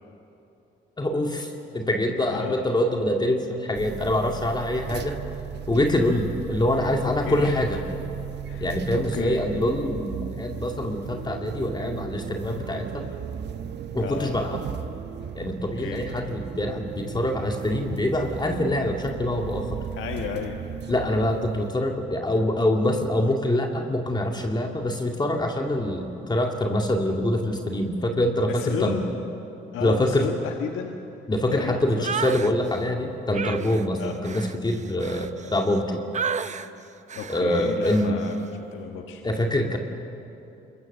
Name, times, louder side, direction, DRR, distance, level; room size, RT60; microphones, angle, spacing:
voice 1, 1.0-5.2 5.7-7.8 8.6-13.1 13.9-14.6 15.3-19.8 20.9-29.0 29.8-30.3 31.3-36.0 37.3-38.2 39.2-39.8, left 1 dB, 20° left, 2 dB, 2.2 m, -25 dB
voice 2, 2.3-2.6 7.2-7.5 8.5-9.4 14.0-14.3 15.8-16.0 19.9-20.6 28.5-29.3 29.7-31.0 31.5-32.1 33.9-34.1 37.1-38.3 38.7-39.2, left 7 dB, 85° left, 3 dB, 1.4 m, -33 dB
sound 1, 3.7-21.7, right 8 dB, 60° right, 1.0 m, -36 dB
sound 2, 32.0-32.5 33.3-35.8 36.1-36.7 37.1-37.4 37.8-38.1, right 6 dB, 35° right, 0.9 m, -32 dB
26.5 x 22.5 x 6.7 m, 2.9 s
cardioid pair, 90°, 20 cm